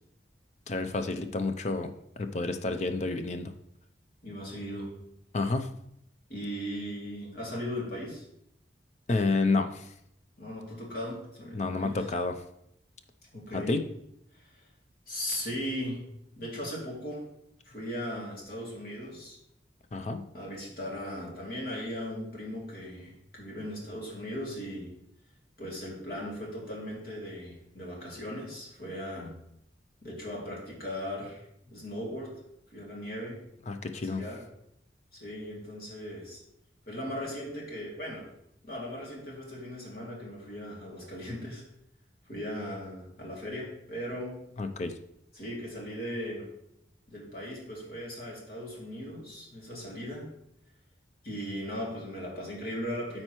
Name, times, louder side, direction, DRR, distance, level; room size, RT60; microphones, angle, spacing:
voice 1, 0.7-3.5 5.3-5.7 9.1-9.9 11.5-12.4 13.5-13.8 19.9-20.2 33.7-34.2 44.6-45.0, left 3 dB, 40° left, 7 dB, 0.5 m, -30 dB
voice 2, 4.2-4.9 6.3-8.2 10.4-12.1 13.3-13.8 15.1-16.0 16.4-17.3 17.6-19.4 20.3-24.9 25.6-29.4 30.0-31.4 31.7-32.3 32.7-33.4 33.9-34.4 35.1-36.4 36.9-38.3 38.6-41.6 42.3-44.4 45.3-46.5 47.1-50.3 51.2-53.2, equal, 55° left, -3 dB, 2.6 m, -38 dB
13.0 x 4.4 x 3.0 m, 0.76 s
head